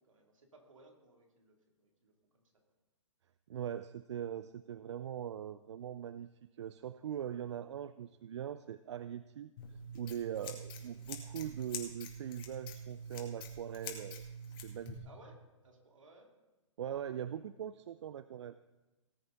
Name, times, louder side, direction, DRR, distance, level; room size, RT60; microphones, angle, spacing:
voice 1, 0.1-2.4 10.7-11.2 15.0-16.3, right 2 dB, 80° right, 1 dB, 2.8 m, -61 dB
voice 2, 3.5-6.3 6.6-9.5 9.9-14.2 14.6-15.1 16.8-18.6, right 9 dB, 60° right, 14 dB, 0.4 m, -41 dB
Scissors, 9.6-15.0, equal, 45° left, 2.2 m, -45 dB
18.5 x 8.0 x 3.9 m, 1.1 s
hypercardioid pair, 125°, 16 cm